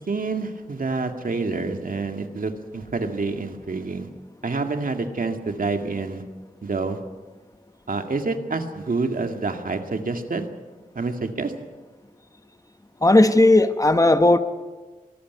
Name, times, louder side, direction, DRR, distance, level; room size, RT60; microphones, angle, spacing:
voice 1, 0.1-4.1 4.4-6.2 6.6-7.0 7.9-10.5 11.0-11.5, right 3 dB, 70° right, 5 dB, 2.1 m, -27 dB
voice 2, 13.0-14.4, left 2 dB, 25° left, 10 dB, 1.1 m, -15 dB
23.5 x 14.5 x 9.2 m, 1.3 s
wide cardioid pair, 85°, 15 cm